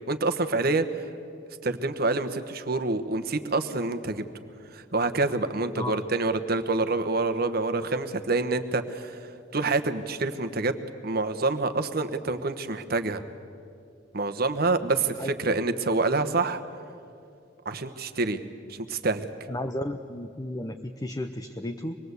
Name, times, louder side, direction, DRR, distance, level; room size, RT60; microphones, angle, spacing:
voice 1, 0.1-0.8 1.6-4.2 4.7-9.2 9.5-10.7 11.0-13.2 14.1-16.6 17.6-18.4 18.7-19.3, right 3 dB, 55° right, 8 dB, 1.2 m, -27 dB
voice 2, 19.5-22.0, left 1 dB, 20° left, 6 dB, 0.7 m, -33 dB
25.0 x 20.5 x 8.2 m, 2.5 s
head